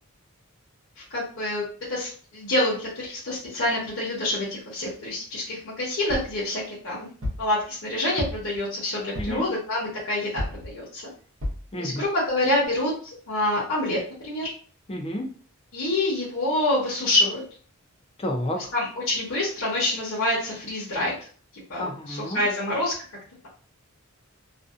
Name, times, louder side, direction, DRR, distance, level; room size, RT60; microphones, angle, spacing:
voice 1, 1.1-1.6 1.9-7.1 7.4-11.0 11.8-12.9 13.3-14.5 15.7-17.4 18.6-21.2 21.7-22.9, left 1 dB, 55° left, -7 dB, 0.8 m, -26 dB
sound 1, 6.1-6.4 7.2-7.5 8.2-8.6 9.2-9.5 10.4-10.7 11.4-11.7 12.3-12.4 12.6-12.7, left 1 dB, 65° right, 0.8 m, -32 dB
voice 2, 11.7-12.0 14.9-15.3 18.2-18.7 21.8-22.4, left 1 dB, 25° left, 3 dB, 0.4 m, -30 dB
2.5 x 2.2 x 2.3 m, 0.43 s
head